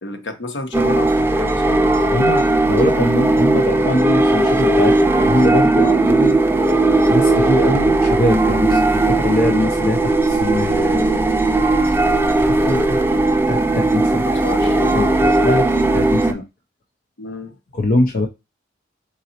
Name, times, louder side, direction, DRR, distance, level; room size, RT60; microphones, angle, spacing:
voice 1, 0.0-2.4 14.2-15.0 17.2-17.6, left 2 dB, 70° left, 0.9 m, -30 dB
sound 1, 0.7-16.3, right 2 dB, 10° right, 0.3 m, -17 dB
voice 2, 2.1-6.4 7.1-13.0 13.5-14.4 14.9-16.4 17.7-18.3, left 1 dB, 45° left, 0.5 m, -22 dB
4.1 x 3.8 x 2.8 m
head